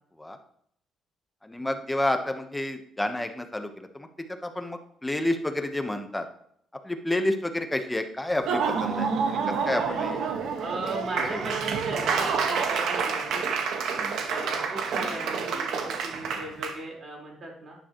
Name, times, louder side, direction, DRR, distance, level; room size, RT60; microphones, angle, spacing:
voice 1, 1.4-6.3 6.8-10.2 11.3-11.4 14.0-14.2, left 1 dB, 10° left, 6 dB, 1.2 m, -30 dB
Laughter / Applause, 8.3-16.7, right 5 dB, 75° right, 1.6 m, -28 dB
voice 2, 10.6-13.6 14.3-17.8, right 2 dB, 40° right, -2 dB, 4.7 m, -37 dB
11.0 x 10.0 x 3.2 m, 0.67 s
cardioid pair, 100°, 0 cm